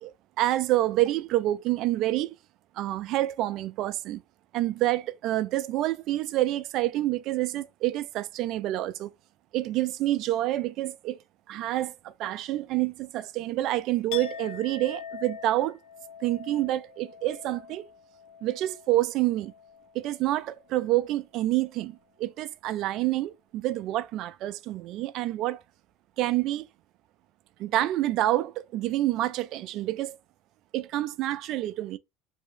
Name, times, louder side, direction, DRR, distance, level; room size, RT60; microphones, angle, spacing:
voice 1, 0.0-2.3 2.8-4.2 4.5-9.1 9.5-11.2 11.5-15.8 16.2-17.9 18.4-19.5 19.9-25.6 26.2-26.7 27.6-30.2 30.7-32.0, right 15 dB, 55° right, 0.4 m, -28 dB
Chink clink, 14.1-20.0 20.3-20.7, left 8 dB, 70° left, 0.7 m, -44 dB
2.8 x 2.7 x 3.3 m
hypercardioid pair, 85°, 0 cm